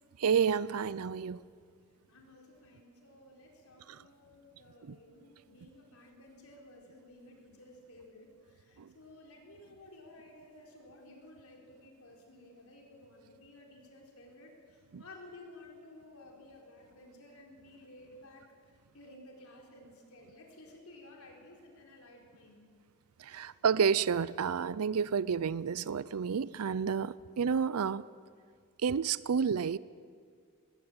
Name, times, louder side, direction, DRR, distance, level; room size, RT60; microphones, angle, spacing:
voice 1, 0.2-1.4 4.9-5.0 8.8-8.9 14.9-15.0 23.2-28.0 28.8-29.8, right 6 dB, 75° right, 19 dB, 0.5 m, -30 dB
voice 2, 2.1-18.4 18.9-22.7 23.3-23.5, left 1 dB, 75° left, 0 dB, 4.4 m, -55 dB
20.5 x 16.5 x 8.8 m, 2.2 s
head